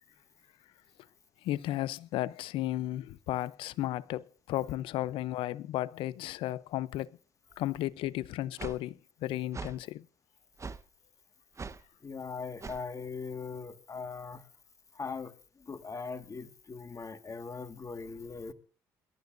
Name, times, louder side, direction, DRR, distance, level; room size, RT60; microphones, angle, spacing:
voice 1, 1.4-7.2 7.6-10.0, left 14 dB, 70° left, 0.6 m, -34 dB
sound 1, 8.6-8.8 9.5-9.8 10.6-10.8 11.6-11.8 12.6-12.8, right 4 dB, 35° right, 1.1 m, -40 dB
voice 2, 12.0-14.5 14.9-18.5, left 4 dB, 35° left, 1.8 m, -40 dB
28.0 x 12.5 x 2.6 m
hypercardioid pair, 50°, 9 cm